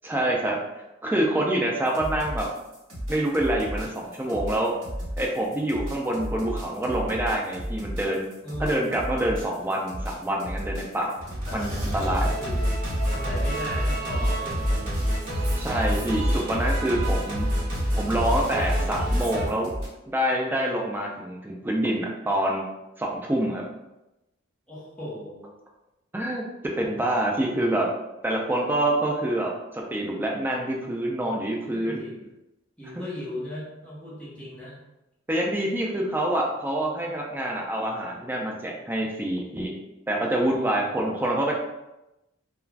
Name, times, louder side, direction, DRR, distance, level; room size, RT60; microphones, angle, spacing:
voice 1, 0.0-0.6 1.0-2.5 3.1-4.7 5.2-8.3 8.6-11.1 11.5-12.2 15.6-17.5 17.9-19.7 20.1-22.6 23.0-23.6 26.1-26.4 26.8-27.9 28.2-32.0 35.3-39.7 40.1-41.5, right 1 dB, 10° right, -2 dB, 0.3 m, -26 dB
sound 1, 1.9-19.9, equal, 65° right, 1.2 m, -35 dB
voice 2, 8.4-9.0 11.5-12.7 13.1-15.1 24.7-25.5 31.7-32.3 32.8-34.8 40.4-40.8, left 1 dB, 5° left, -8 dB, 0.9 m, -38 dB
Singing, 11.2-19.5, equal, 45° right, 0.8 m, -27 dB
2.4 x 2.3 x 3.2 m, 0.95 s
head